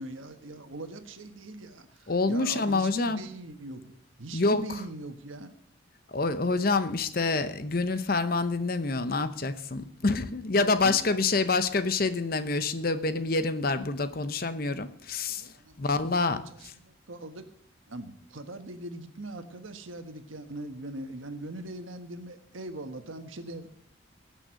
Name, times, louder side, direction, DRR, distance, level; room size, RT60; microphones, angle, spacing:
voice 1, 0.0-5.5 10.8-11.5 15.4-16.1 16.5-17.5 17.9-23.7, right 2 dB, 90° right, 8 dB, 1.4 m, -41 dB
voice 2, 2.1-3.2 4.3-4.8 6.1-15.5 15.8-16.7, left 3 dB, 45° left, 11 dB, 0.8 m, -27 dB
18.5 x 6.5 x 6.4 m, 0.68 s
head